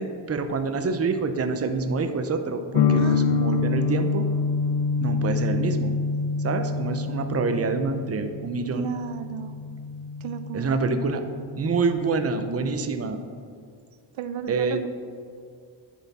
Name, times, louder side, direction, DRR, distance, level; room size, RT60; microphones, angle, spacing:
voice 1, 0.0-4.3 5.0-5.9 6.4-8.9 10.5-11.2 11.6-13.2 14.5-14.8, right 4 dB, 30° right, 7 dB, 0.6 m, -27 dB
sound 1, 2.7-12.5, left 4 dB, 55° left, 0.5 m, -27 dB
voice 2, 2.9-3.4 8.7-9.6 10.2-10.8 14.1-14.9, right 8 dB, 80° right, 10 dB, 0.6 m, -34 dB
9.4 x 7.2 x 4.2 m, 2.3 s
wide cardioid pair, 130°, 47 cm